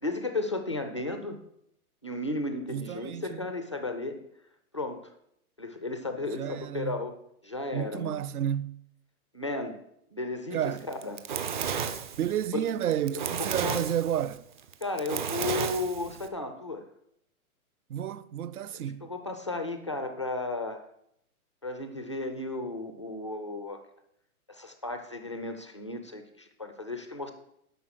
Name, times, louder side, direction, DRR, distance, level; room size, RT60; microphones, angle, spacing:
voice 1, 0.0-1.4 2.0-4.2 4.7-5.0 5.6-7.2 7.4-8.2 9.3-9.8 10.1-10.6 10.9-11.2 13.4-13.8 14.8-16.8 19.0-20.8 21.6-23.8 24.5-27.3, left 2 dB, 20° left, 0.3 m, -34 dB
voice 2, 2.7-3.5 6.3-7.0 7.7-8.8 10.5-10.9 12.2-14.4 17.9-19.1, right 10 dB, 75° right, 0.7 m, -31 dB
Fire, 10.8-16.3, right 7 dB, 35° right, 0.6 m, -33 dB
11.5 x 5.2 x 6.3 m
hypercardioid pair, 160°, 45 cm